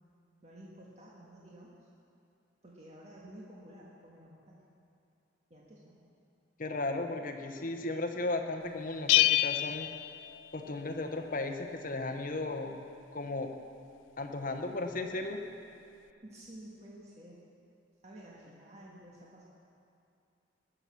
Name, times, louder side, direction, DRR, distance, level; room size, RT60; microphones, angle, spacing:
voice 1, 0.4-1.8 2.6-4.6 5.5-6.0 16.2-17.4 18.0-19.5, right 1 dB, 35° right, -5 dB, 1.6 m, -51 dB
voice 2, 6.6-9.9 10.5-12.8 13.1-13.5 14.2-15.4, left 2 dB, 45° left, 5 dB, 1.0 m, -35 dB
Bell, 9.1-10.9, left 15 dB, 80° left, 0.4 m, -27 dB
20.0 x 6.9 x 6.3 m, 2.6 s
head